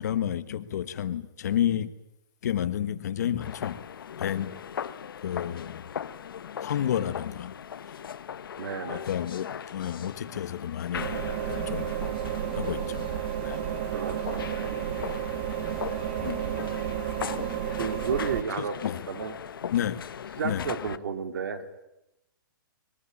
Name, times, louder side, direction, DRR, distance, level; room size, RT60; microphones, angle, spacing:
voice 1, 0.0-1.9 2.4-3.8 4.2-4.6 5.2-5.9 6.6-7.5 8.9-11.2 11.5-11.9 12.6-13.1 13.4-13.6 16.2-16.4 18.8-19.0 19.7-20.0 20.4-20.7, left 10 dB, 50° left, 1.4 m, -30 dB
sound 1, 3.4-21.0, left 8 dB, 90° left, 1.1 m, -39 dB
voice 2, 8.6-9.0 13.9-14.7 17.8-19.4 20.4-21.6, right 6 dB, 65° right, 3.0 m, -32 dB
sound 2, 10.9-18.4, right 11 dB, 30° right, 0.9 m, -32 dB
22.5 x 21.5 x 10.0 m
hypercardioid pair, 175°, 11 cm